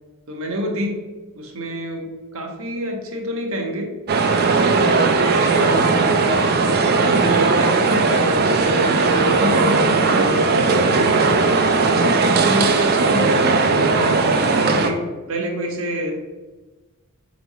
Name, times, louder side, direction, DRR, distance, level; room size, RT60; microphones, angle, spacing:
voice 1, 0.3-1.0 1.3-3.9 4.4-6.4 6.7-8.8 9.1-11.4 11.8-15.0 15.3-16.2, equal, 70° right, 2 dB, 0.8 m, -27 dB
sound 1, 4.1-14.9, right 3 dB, 45° right, 0.4 m, -17 dB
3.5 x 3.2 x 4.1 m, 1.2 s
head